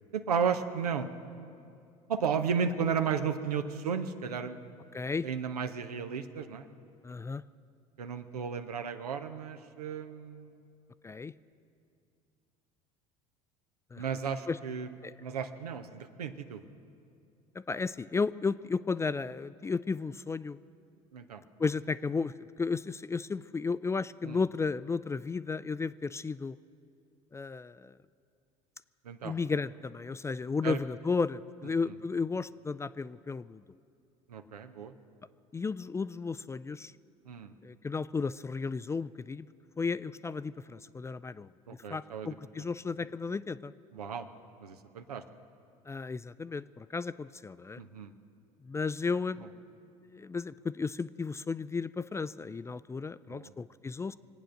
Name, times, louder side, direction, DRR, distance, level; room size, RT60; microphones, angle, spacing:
voice 1, 0.1-1.1 2.1-4.6 5.2-6.7 8.0-10.6 14.0-14.9 15.2-16.6 21.1-21.4 24.2-24.4 29.0-29.3 30.6-30.8 34.3-34.9 37.3-37.5 41.7-42.3 43.9-44.3 44.6-45.2 47.8-48.1 53.3-53.5, right 6 dB, 85° right, 8 dB, 0.8 m, -34 dB
voice 2, 4.9-5.3 7.0-7.4 11.0-11.3 13.9-14.0 14.5-14.6 15.0-15.1 17.5-20.6 21.6-26.6 27.3-27.9 29.2-33.6 35.5-36.9 37.6-39.5 39.8-41.5 41.9-43.7 45.9-47.8 48.6-49.5 50.1-54.1, left 4 dB, 15° left, 16 dB, 0.3 m, -34 dB
24.5 x 8.9 x 6.4 m, 2.5 s
hypercardioid pair, 70°, 19 cm